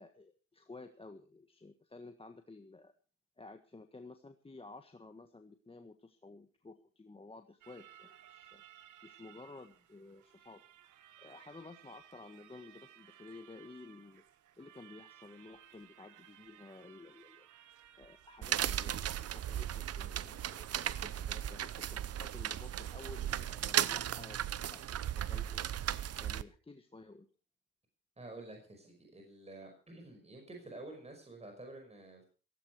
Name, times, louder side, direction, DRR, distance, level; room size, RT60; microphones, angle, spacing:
voice 1, 0.0-2.9 3.4-8.6 9.0-10.6 11.2-14.2 14.6-17.5 17.9-24.8 25.1-25.7 26.2-27.3, left 3 dB, 20° left, 6 dB, 1.5 m, -53 dB
sound 1, 7.6-21.9, right 11 dB, 80° right, 1.5 m, -60 dB
sound 2, 18.4-26.4, right 10 dB, 55° right, 0.8 m, -36 dB
voice 2, 28.2-32.3, right 2 dB, 20° right, 3 dB, 5.5 m, -50 dB
16.0 x 16.0 x 4.6 m, 0.37 s
cardioid pair, 90°, 30 cm